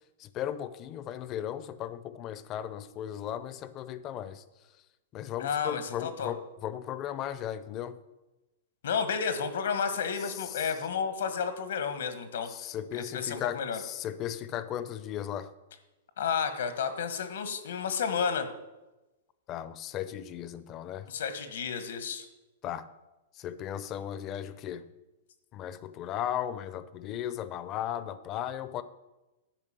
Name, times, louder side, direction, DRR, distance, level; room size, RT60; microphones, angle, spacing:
voice 1, 0.2-4.4 5.1-8.0 10.3-10.7 12.5-15.5 19.5-21.1 22.6-22.9 23.3-24.9 25.5-28.8, left 10 dB, 25° left, 0.5 m, -36 dB
voice 2, 5.4-6.3 8.8-12.5 12.9-13.8 16.2-18.5 21.1-22.2, left 6 dB, 80° left, 1.5 m, -31 dB
11.0 x 5.2 x 7.6 m
hypercardioid pair, 160°, 0 cm